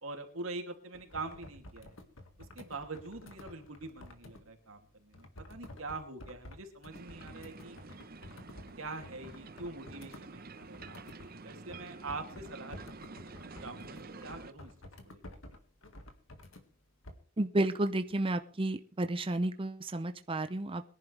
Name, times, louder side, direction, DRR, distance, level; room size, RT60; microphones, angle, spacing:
voice 1, 0.0-2.0 2.4-7.8 8.3-8.4 8.8-12.8 13.6-14.7 15.0-15.4, right 3 dB, 85° right, 4 dB, 2.8 m, -44 dB
sound 1, 0.9-4.4 5.1-11.3 11.7-16.6 17.0-17.1, left 1 dB, 75° left, 2.0 m, -51 dB
sound 2, 6.9-14.5, right 3 dB, 45° right, 1.0 m, -49 dB
voice 2, 17.4-20.8, right 1 dB, 25° right, 8 dB, 0.6 m, -32 dB
22.5 x 11.0 x 3.4 m, 0.41 s
head